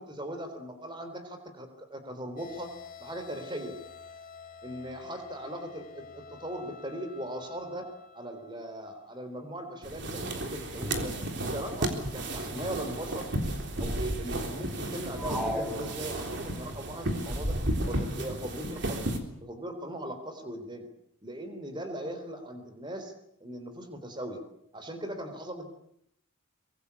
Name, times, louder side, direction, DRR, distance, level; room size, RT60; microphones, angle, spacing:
voice 1, 0.0-2.7 3.0-3.8 4.6-7.9 8.1-13.3 13.8-17.5 17.8-19.1 19.4-20.9 21.2-23.1 23.4-24.4 24.7-25.7, right 1 dB, 20° right, 8 dB, 3.8 m, -39 dB
sound 1, 2.4-9.3, left 5 dB, 40° left, 2.4 m, -49 dB
sound 2, 9.8-19.2, right 1 dB, 55° right, 3.7 m, -33 dB
sound 3, 15.2-16.6, equal, ahead, 2.2 m, -36 dB
24.0 x 22.0 x 8.5 m, 0.74 s
head